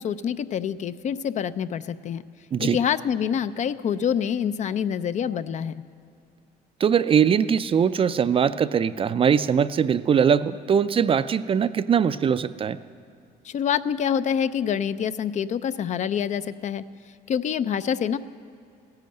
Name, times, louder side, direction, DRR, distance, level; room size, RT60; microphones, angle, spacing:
voice 1, 0.0-2.2 2.6-5.7 13.4-16.8 17.3-18.2, left 8 dB, 45° left, 13 dB, 0.5 m, -26 dB
voice 2, 6.8-12.8, right 7 dB, 35° right, 13 dB, 0.4 m, -21 dB
15.0 x 10.5 x 7.7 m, 2.4 s
cardioid pair, 110°, 17 cm